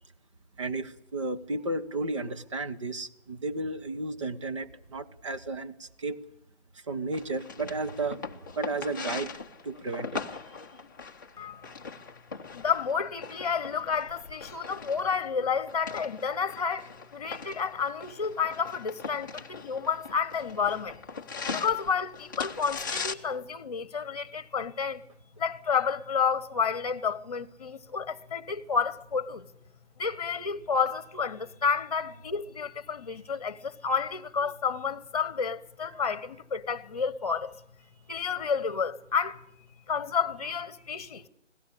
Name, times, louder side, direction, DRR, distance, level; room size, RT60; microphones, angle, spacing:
voice 1, 0.6-6.2 6.9-8.2 8.6-9.3 9.6-10.2, right 2 dB, 25° right, 1.1 m, -33 dB
sound 1, 7.1-23.1, left 5 dB, 15° left, 0.8 m, -40 dB
voice 2, 12.5-21.0 21.5-25.0 25.4-29.5 30.0-37.5 38.1-39.4 39.9-41.3, left 6 dB, 35° left, 1.3 m, -30 dB
25.5 x 17.0 x 8.4 m
figure-of-eight pair, 160°, 35 cm